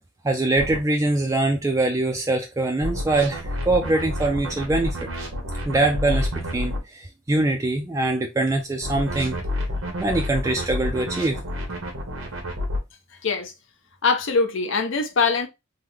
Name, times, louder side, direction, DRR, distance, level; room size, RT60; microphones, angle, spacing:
voice 1, 0.2-5.0 5.7-6.3 6.5-9.4 10.0-11.4, right 2 dB, 15° right, 0.3 m, -23 dB
sound 1, 0.6-0.8 2.8-6.8 8.8-12.8, left 1 dB, 85° right, 1.1 m, -29 dB
voice 2, 13.1-13.5 14.0-15.5, left 4 dB, 65° left, 0.7 m, -22 dB
3.5 x 2.1 x 3.1 m
head